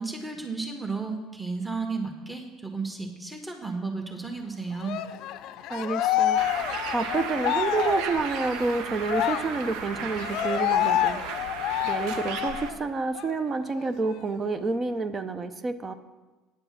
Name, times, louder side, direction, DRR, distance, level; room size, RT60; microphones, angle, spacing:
voice 1, 0.0-5.0, right 4 dB, 10° right, 3 dB, 1.4 m, -33 dB
Cheering, 4.8-12.8 13.1-13.3 13.7-14.7, left 12 dB, 60° left, 0.5 m, -28 dB
voice 2, 5.7-6.4 6.9-11.2 11.8-15.9, right 4 dB, 35° right, 11 dB, 0.7 m, -29 dB
Bird, 6.4-12.7, right 6 dB, 70° right, 0.8 m, -35 dB
9.4 x 7.7 x 5.8 m, 1.2 s
hypercardioid pair, 65°, 0 cm